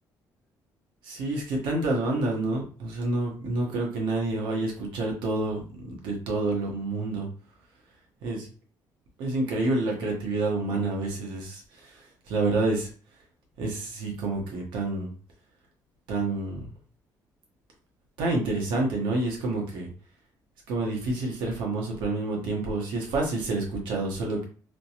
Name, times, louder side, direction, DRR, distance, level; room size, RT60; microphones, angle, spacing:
voice 1, 1.0-7.3 8.2-8.5 9.2-11.9 12.3-12.9 13.6-15.1 16.1-16.7 18.2-19.9 20.7-24.5, right 2 dB, 90° right, 0 dB, 1.0 m, -28 dB
3.2 x 2.0 x 2.8 m, 0.39 s
cardioid pair, 130°, 8 cm